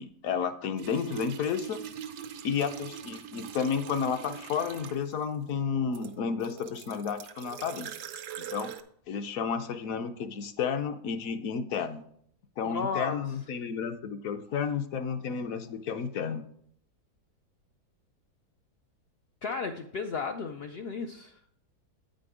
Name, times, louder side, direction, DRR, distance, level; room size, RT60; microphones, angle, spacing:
voice 1, 0.0-1.8 2.4-7.9 8.4-8.7 9.1-12.0 12.6-16.4, left 6 dB, 65° left, 8 dB, 1.0 m, -32 dB
sound 1, 0.8-5.2 5.9-8.8, right 9 dB, 90° right, 1.3 m, -42 dB
voice 2, 12.6-13.2 19.4-21.4, left 5 dB, 90° left, 6 dB, 0.5 m, -34 dB
8.9 x 5.2 x 4.8 m, 0.66 s
omnidirectional pair, 1.7 m